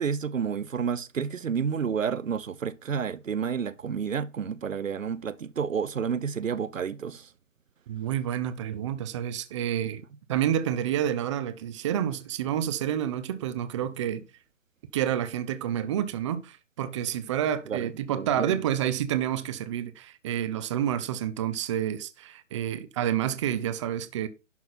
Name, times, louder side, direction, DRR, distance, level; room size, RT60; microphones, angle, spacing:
voice 1, 0.0-7.3 17.7-18.5, right 7 dB, 85° right, 0.9 m, -30 dB
voice 2, 7.9-10.0 10.3-14.3 14.9-24.3, right 10 dB, 25° right, 0.7 m, -29 dB
11.5 x 6.1 x 4.3 m
hypercardioid pair, 145°, 38 cm